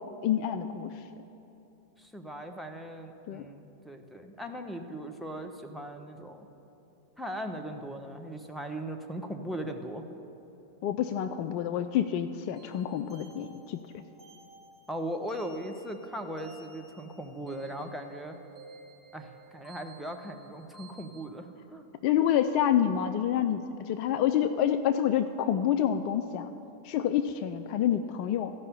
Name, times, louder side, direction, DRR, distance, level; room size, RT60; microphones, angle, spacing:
voice 1, 0.2-0.9 3.3-3.5 10.8-13.8 22.0-26.5 26.8-28.5, left 10 dB, 45° left, 9 dB, 0.3 m, -27 dB
voice 2, 2.0-6.5 7.2-10.0 14.9-18.4 19.1-21.9, right 1 dB, ahead, 4 dB, 0.8 m, -39 dB
sound 1, 12.6-21.3, right 3 dB, 30° right, 1.5 m, -53 dB
13.5 x 5.5 x 6.8 m, 2.9 s
figure-of-eight pair, 90°, 0 cm